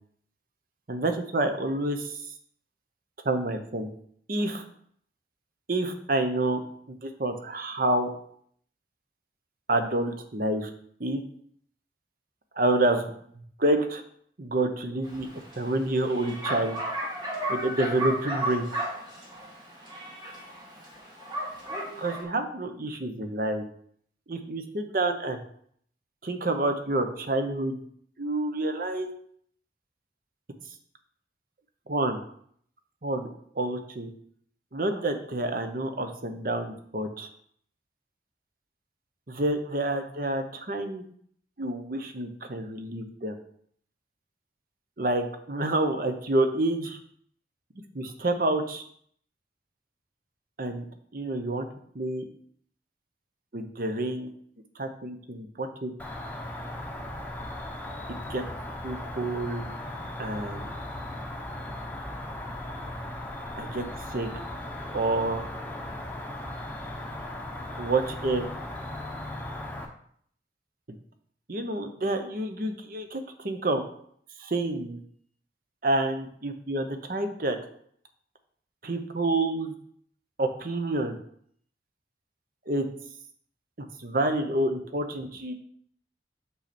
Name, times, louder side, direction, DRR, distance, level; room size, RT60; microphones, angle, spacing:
voice 1, 0.9-2.3 3.2-3.9 4.3-4.6 5.7-6.6 7.0-8.1 9.7-10.7 11.0-11.2 12.6-13.1 13.6-14.0 14.4-15.3 15.6-16.8 17.5-18.7 22.0-23.6 24.3-25.4 26.2-27.8 28.2-29.1 31.9-32.2 33.0-33.3 33.5-34.1 34.7-37.3 39.3-41.0 41.6-43.3 45.0-47.0 47.9-48.8 50.6-50.9 51.1-51.7 51.9-52.2 53.5-54.3 54.8-55.9 58.1-58.4 58.8-59.7 60.2-60.7 63.6-64.3 64.9-65.4 67.8-68.5 71.5-73.8 74.4-75.0 75.8-77.6 78.8-79.7 80.4-81.2 82.7-82.9 83.8-85.5, right 2 dB, 50° right, 7 dB, 0.8 m, -28 dB
Bark, 15.0-22.2, right 1 dB, 25° right, 2.1 m, -34 dB
Cricket, 56.0-69.9, left 1 dB, 10° left, 0.8 m, -37 dB
6.5 x 5.7 x 4.3 m, 0.63 s
head